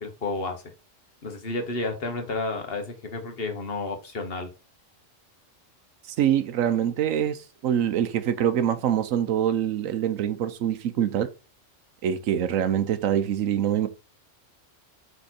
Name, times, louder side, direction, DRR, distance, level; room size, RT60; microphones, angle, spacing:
voice 1, 0.0-0.6 1.2-4.5, left 3 dB, 50° left, 1.4 m, -31 dB
voice 2, 6.1-11.3 12.0-13.9, right 10 dB, 90° right, 1.1 m, -25 dB
5.4 x 4.5 x 4.2 m
omnidirectional pair, 1.3 m